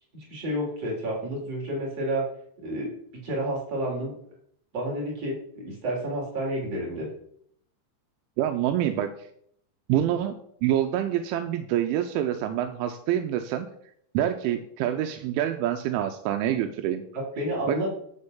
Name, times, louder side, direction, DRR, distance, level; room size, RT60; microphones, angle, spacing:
voice 1, 0.1-2.3 2.6-2.9 3.2-4.1 4.7-7.1 17.1-17.9, right 1 dB, 35° right, -3 dB, 4.2 m, -30 dB
voice 2, 8.4-9.1 9.9-13.7 14.1-17.0 17.7-17.9, right 11 dB, 85° right, 7 dB, 3.1 m, -26 dB
12.0 x 4.4 x 7.0 m, 0.68 s
omnidirectional pair, 5.6 m